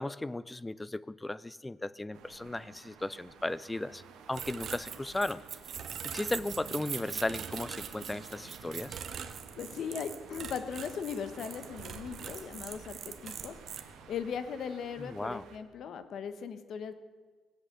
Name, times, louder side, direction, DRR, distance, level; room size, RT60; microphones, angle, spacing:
voice 1, 0.0-4.0 4.3-5.4 6.0-9.0 15.0-15.4, left 2 dB, 10° left, 19 dB, 0.4 m, -36 dB
sound 1, 2.1-15.6, right 6 dB, 85° right, 1.9 m, -52 dB
sound 2, 4.3-13.8, right 7 dB, 50° right, 1.2 m, -42 dB
voice 2, 9.6-13.5 14.1-16.9, left 7 dB, 60° left, 11 dB, 1.3 m, -38 dB
19.5 x 8.1 x 8.3 m, 1.4 s
cardioid pair, 125°, 0 cm